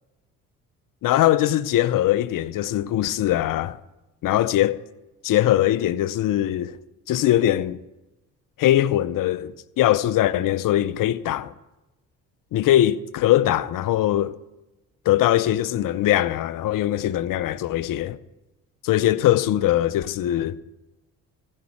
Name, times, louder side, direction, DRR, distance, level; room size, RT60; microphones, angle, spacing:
voice 1, 1.0-3.8 4.2-4.8 5.2-6.8 7.1-7.8 8.6-11.5 12.5-14.4 15.1-18.2 18.8-20.6, left 13 dB, 55° left, 0.7 m, -21 dB
15.5 x 5.4 x 8.6 m
hypercardioid pair, 55°, 40 cm